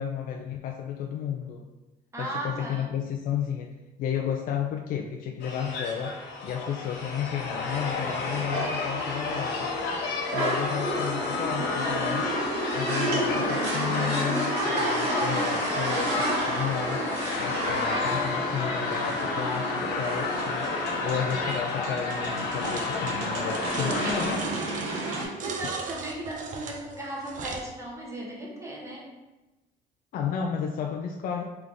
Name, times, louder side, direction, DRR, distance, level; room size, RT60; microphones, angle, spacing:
voice 1, 0.0-1.6 2.2-9.7 10.3-12.3 12.7-17.0 17.4-24.5 30.1-31.4, left 8 dB, 55° left, 2 dB, 0.4 m, -32 dB
voice 2, 2.1-2.9 25.0-29.1, right 1 dB, 15° right, -3 dB, 1.2 m, -36 dB
sound 1, 5.4-24.4, left 3 dB, 90° left, 0.8 m, -31 dB
sound 2, 7.7-25.2, right 1 dB, 85° right, 1.4 m, -31 dB
sound 3, 22.6-22.9 23.5-27.7, right 4 dB, 50° right, 0.6 m, -37 dB
3.5 x 3.4 x 3.7 m, 1.1 s
cardioid pair, 110°, 17 cm